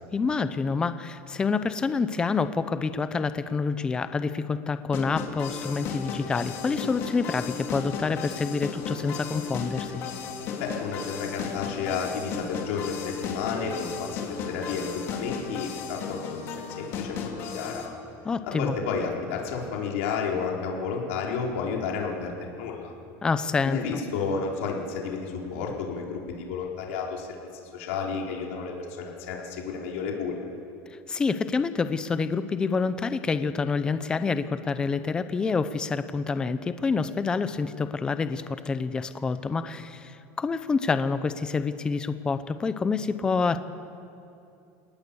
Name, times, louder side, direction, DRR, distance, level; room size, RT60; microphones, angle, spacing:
voice 1, 0.1-10.0 18.2-18.7 23.2-23.8 31.1-43.6, left 4 dB, 10° left, 12 dB, 0.6 m, -27 dB
sound 1, 4.9-17.9, left 6 dB, 40° left, 2.8 m, -35 dB
voice 2, 10.6-18.0 18.4-22.9 23.6-27.3 27.6-30.4, left 5 dB, 90° left, -1 dB, 4.1 m, -32 dB
28.0 x 19.0 x 7.0 m, 2.6 s
cardioid pair, 175°, 7 cm